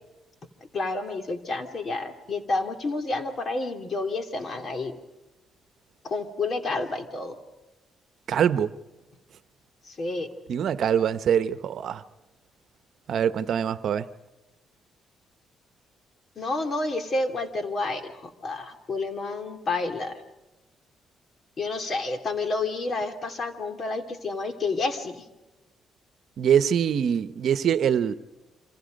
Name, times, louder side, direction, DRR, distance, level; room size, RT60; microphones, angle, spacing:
voice 1, 0.7-4.9 6.0-7.3 9.8-10.3 16.4-20.2 21.6-25.2, left 3 dB, 45° left, 2.9 m, -30 dB
voice 2, 8.3-8.7 10.5-12.0 13.1-14.1 26.4-28.2, right 8 dB, 65° right, 0.9 m, -23 dB
28.5 x 26.5 x 5.3 m
cardioid pair, 90°, 0 cm